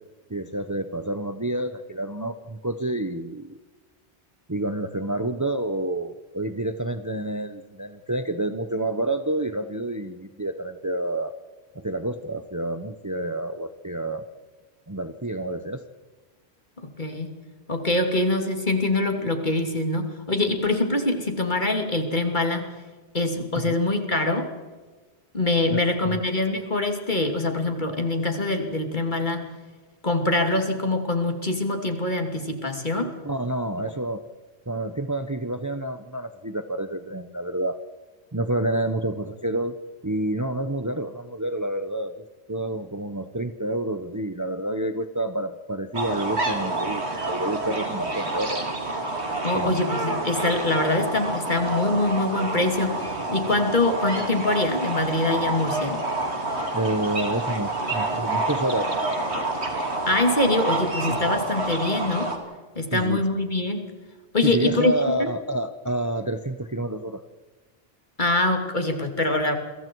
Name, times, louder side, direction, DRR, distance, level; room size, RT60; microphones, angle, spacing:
voice 1, 0.3-3.5 4.5-11.3 11.7-14.2 14.9-15.8 23.6-23.8 25.7-25.8 26.0-26.2 33.2-34.2 34.7-37.8 38.3-39.8 40.0-48.7 49.5-49.7 56.7-59.1 62.9-63.2 64.4-67.2, right 1 dB, 20° right, 9 dB, 0.9 m, -28 dB
voice 2, 17.0-17.3 17.7-22.6 23.1-24.5 25.3-29.4 30.0-33.1 49.4-56.0 60.1-62.3 62.7-63.8 64.3-64.9 65.2-65.3 68.2-69.5, left 2 dB, 45° left, 4 dB, 3.0 m, -24 dB
sound 1, 45.9-62.4, right 2 dB, 80° right, 3.5 m, -28 dB
29.0 x 23.0 x 4.7 m, 1.3 s
omnidirectional pair, 1.1 m